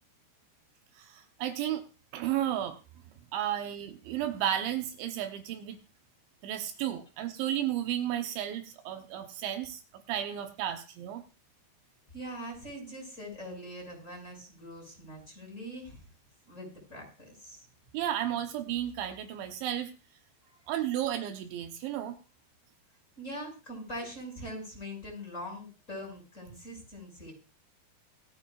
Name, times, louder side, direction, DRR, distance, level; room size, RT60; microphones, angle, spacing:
voice 1, 1.0-1.8 2.1-2.8 3.3-5.8 6.4-9.8 10.1-11.2 17.9-19.9 20.7-22.2, right 11 dB, 80° right, 6 dB, 3.3 m, -33 dB
voice 2, 12.1-16.1 16.5-17.7 20.4-20.6 23.2-27.3, equal, 15° left, 1 dB, 7.0 m, -42 dB
27.5 x 9.6 x 2.5 m, 0.32 s
omnidirectional pair, 5.3 m